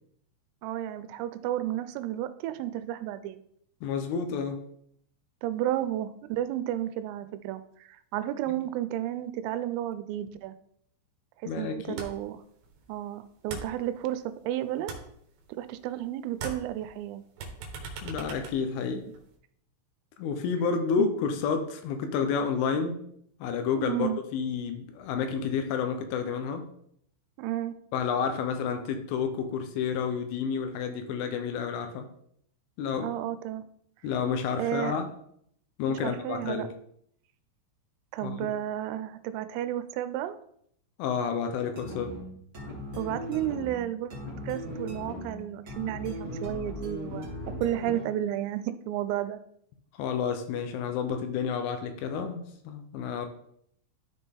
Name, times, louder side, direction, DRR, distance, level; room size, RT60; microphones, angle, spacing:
voice 1, 0.6-3.4 5.4-10.5 11.6-12.4 12.9-14.9 15.6-17.2 21.0-21.1 23.7-24.2 27.4-27.7 33.0-33.6 34.6-35.0 36.0-36.7 38.1-40.4 43.0-44.2 44.4-47.3 47.6-49.4, right 12 dB, 85° right, 12 dB, 3.2 m, -32 dB
voice 2, 3.8-4.6 8.5-8.6 11.5-12.0 18.0-19.0 20.2-23.0 23.4-26.6 27.9-32.0 32.8-33.1 34.0-35.1 35.8-36.7 38.2-38.4 41.0-42.1 50.0-53.3, left 6 dB, 80° left, 7 dB, 3.0 m, -30 dB
sound 1, 12.0-12.4 12.6-14.4 14.7-16.0 16.3-19.3, right 4 dB, 70° right, 2.8 m, -41 dB
sound 2, 41.8-48.2, left 1 dB, 50° right, 1.0 m, -38 dB
13.0 x 4.3 x 3.6 m, 0.69 s
omnidirectional pair, 5.9 m